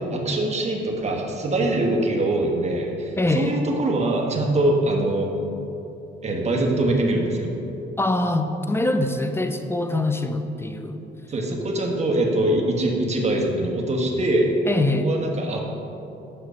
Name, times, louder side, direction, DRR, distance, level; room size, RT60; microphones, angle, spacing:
voice 1, 0.1-5.3 6.2-7.5 11.3-14.5 15.0-15.6, right 1 dB, 35° right, 0 dB, 1.4 m, -23 dB
voice 2, 3.2-3.6 8.0-11.0 14.7-15.1, left 2 dB, 10° left, 6 dB, 0.7 m, -23 dB
7.7 x 6.2 x 5.7 m, 2.9 s
cardioid pair, 90°, 20 cm